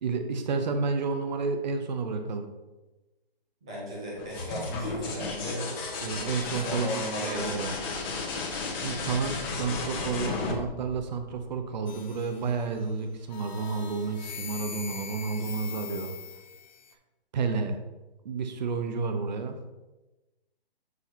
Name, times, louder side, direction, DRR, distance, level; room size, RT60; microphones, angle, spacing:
voice 1, 0.0-2.5 6.0-6.9 7.2-7.7 8.8-16.2 17.3-17.8 18.2-19.6, right 4 dB, 50° right, 7 dB, 0.8 m, -31 dB
voice 2, 3.6-5.8 6.6-7.7, equal, 5° right, -5 dB, 0.4 m, -36 dB
sound 1, 4.2-11.8 13.5-14.1, left 3 dB, 25° left, 1.0 m, -34 dB
sound 2, 11.9-12.8 13.3-16.9, left 7 dB, 50° left, 0.7 m, -42 dB
7.2 x 6.2 x 2.9 m, 1.1 s
hypercardioid pair, 160°, 30 cm